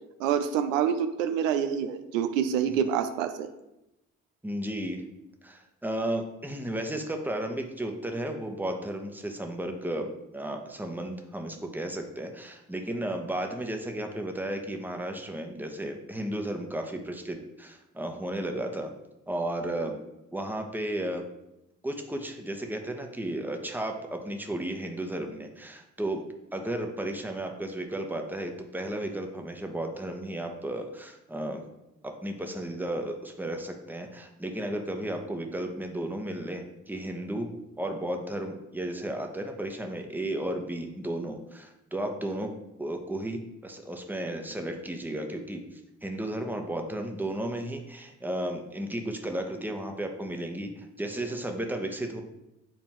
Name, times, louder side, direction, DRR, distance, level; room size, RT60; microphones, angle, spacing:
voice 1, 0.2-3.5, right 8 dB, 80° right, 9 dB, 0.5 m, -27 dB
voice 2, 4.4-5.0 5.4-18.9 19.3-20.0 20.3-21.2 21.8-31.6 32.0-37.5 37.8-42.5 42.8-45.6 46.0-52.2, right 1 dB, 5° right, 3 dB, 1.0 m, -34 dB
7.5 x 4.2 x 3.0 m, 0.89 s
figure-of-eight pair, 45°, 39 cm